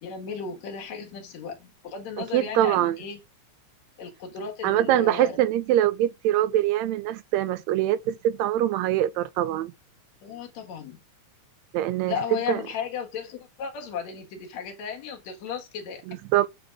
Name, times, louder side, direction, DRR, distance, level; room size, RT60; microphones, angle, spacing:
voice 1, 0.0-3.2 4.0-5.4 10.2-11.0 12.1-16.0, left 7 dB, 70° left, 2.9 m, -35 dB
voice 2, 2.3-3.0 4.6-9.7 11.7-12.2 12.5-12.6 16.1-16.5, right 13 dB, 80° right, 1.7 m, -23 dB
8.5 x 4.0 x 3.6 m
omnidirectional pair, 3.4 m